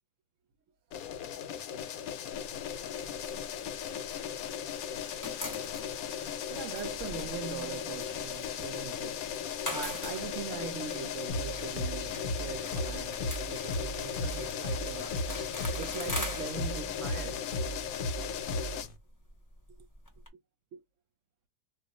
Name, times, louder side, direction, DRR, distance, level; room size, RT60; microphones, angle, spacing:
sound 1, 0.9-18.9, left 9 dB, 80° left, 1.0 m, -37 dB
sound 2, 2.3-4.6 4.8-20.3, left 1 dB, 20° left, 0.6 m, -44 dB
voice 1, 6.5-15.3 15.7-17.5 19.8-19.9 20.7-20.8, right 8 dB, 70° right, 0.8 m, -42 dB
sound 3, 11.3-19.0, equal, 50° left, 0.8 m, -37 dB
2.4 x 2.3 x 3.9 m
omnidirectional pair, 1.5 m